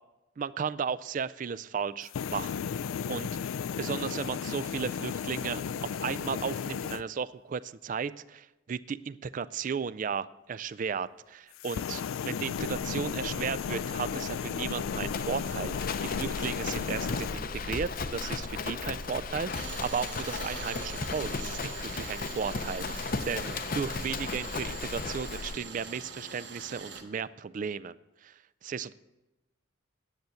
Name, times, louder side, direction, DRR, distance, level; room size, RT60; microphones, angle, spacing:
voice 1, 0.4-2.7 3.1-28.0 28.2-28.9, right 6 dB, 40° right, 17 dB, 0.3 m, -35 dB
sound 1, 2.0-7.0 11.5-17.4, left 7 dB, 90° left, 0.4 m, -34 dB
Livestock farm animals working animals, 12.5-25.6, left 4 dB, 45° left, 0.6 m, -36 dB
Tools, 19.5-27.0, right 5 dB, 60° right, 1.4 m, -43 dB
10.5 x 7.8 x 6.9 m, 1.0 s
head